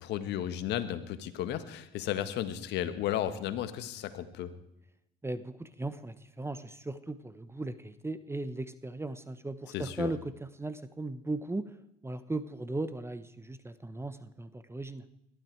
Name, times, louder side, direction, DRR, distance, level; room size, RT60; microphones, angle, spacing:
voice 1, 0.0-4.5 9.7-10.1, left 11 dB, 65° left, 11 dB, 1.6 m, -34 dB
voice 2, 5.2-11.7 12.0-15.0, right 2 dB, 15° right, 13 dB, 1.2 m, -37 dB
21.0 x 13.0 x 4.7 m, 0.86 s
hypercardioid pair, 65°, 19 cm